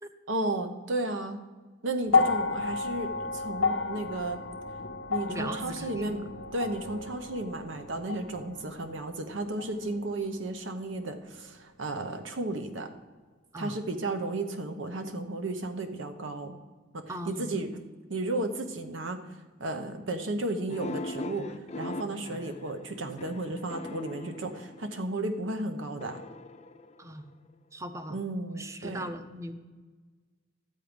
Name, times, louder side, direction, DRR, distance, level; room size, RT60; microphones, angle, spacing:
voice 1, 0.3-1.4 1.8-4.4 5.1-12.9 13.6-16.5 16.9-17.7 18.1-19.2 19.6-26.2 28.1-29.1, right 2 dB, 90° right, 7 dB, 1.0 m, -33 dB
sound 1, 2.1-10.4 11.5-11.6, left 4 dB, 75° left, 0.7 m, -32 dB
voice 2, 5.3-6.2 13.5-13.8 17.1-17.6 27.0-27.3 27.7-28.2 28.6-29.5, right 1 dB, 15° right, 9 dB, 0.6 m, -39 dB
sound 2, 20.7-25.2 26.0-27.5, left 2 dB, 35° left, 0.5 m, -41 dB
12.0 x 7.7 x 5.1 m, 1.4 s
head